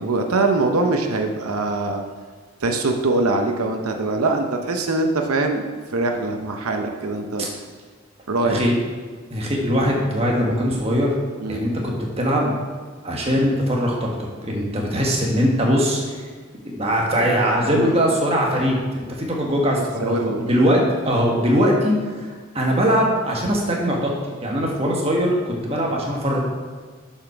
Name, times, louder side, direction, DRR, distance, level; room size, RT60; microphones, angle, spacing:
voice 1, 0.0-2.0 2.6-7.5 8.3-8.7 11.4-11.7 14.7-14.9 17.8-18.0 19.8-20.4, right 2 dB, 85° right, 4 dB, 0.8 m, -23 dB
voice 2, 8.4-8.8 9.3-11.1 11.5-12.5 13.0-16.3 16.6-22.3 22.5-24.1 24.4-26.4, equal, 25° right, -2 dB, 1.4 m, -21 dB
7.2 x 5.6 x 5.9 m, 1.5 s
head